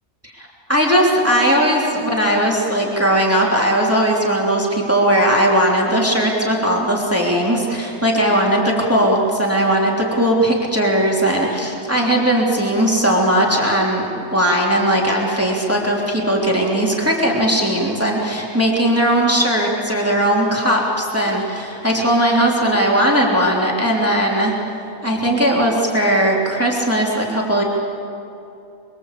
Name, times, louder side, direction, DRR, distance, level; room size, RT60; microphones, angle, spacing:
voice 1, 0.2-24.5 25.0-27.6, right 1 dB, 10° right, -2 dB, 3.2 m, -18 dB
25.0 x 24.5 x 8.4 m, 2.8 s
omnidirectional pair, 1.5 m